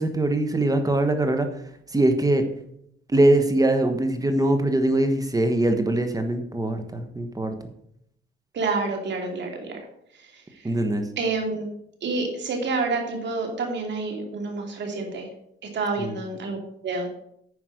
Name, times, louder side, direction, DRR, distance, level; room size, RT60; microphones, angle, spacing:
voice 1, 0.0-1.5 1.9-2.4 3.1-7.5 10.6-11.0 16.0-16.1, right 1 dB, 20° right, 6 dB, 1.3 m, -22 dB
voice 2, 8.5-9.8 10.1-10.7 11.2-11.7 12.0-15.3 15.6-17.1, right 3 dB, 65° right, 2 dB, 2.8 m, -28 dB
9.6 x 5.3 x 6.5 m, 0.73 s
cardioid pair, 90°, 20 cm